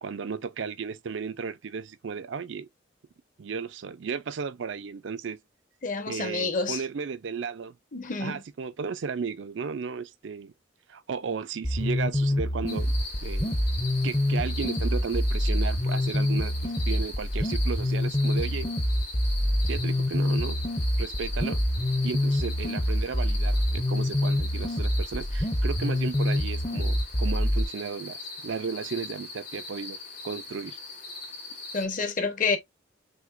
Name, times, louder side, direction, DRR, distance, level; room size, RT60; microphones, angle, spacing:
voice 1, 0.0-2.7 3.4-5.4 6.1-7.8 8.2-10.5 10.9-13.5 14.0-18.7 19.6-20.6 21.0-21.6 22.0-30.0 30.2-30.8, right 5 dB, 70° right, 0.5 m, -34 dB
voice 2, 5.8-6.8 7.9-8.4 31.7-32.6, left 4 dB, 45° left, 0.9 m, -28 dB
sound 1, 11.6-27.6, left 1 dB, 20° left, 0.6 m, -26 dB
sound 2, 12.7-31.8, left 3 dB, 60° left, 2.5 m, -41 dB
6.2 x 2.8 x 2.4 m
head